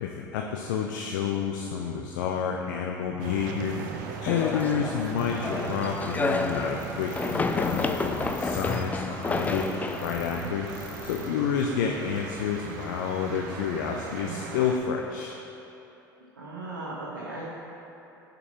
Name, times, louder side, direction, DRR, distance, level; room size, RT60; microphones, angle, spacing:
voice 1, 0.0-3.8 4.2-15.3, left 7 dB, 70° left, 1 dB, 0.6 m, -29 dB
sound 1, 3.2-14.8, right 6 dB, 65° right, 0.8 m, -38 dB
sound 2, 4.3-11.4, left 3 dB, 15° left, 0.5 m, -31 dB
sound 3, 5.2-11.3 11.6-11.7 12.2-12.3, left 5 dB, 40° left, 1.2 m, -48 dB
voice 2, 16.4-17.5, right 2 dB, 80° right, -7 dB, 1.2 m, -37 dB
15.0 x 5.3 x 3.0 m, 2.9 s
figure-of-eight pair, 70°, 11 cm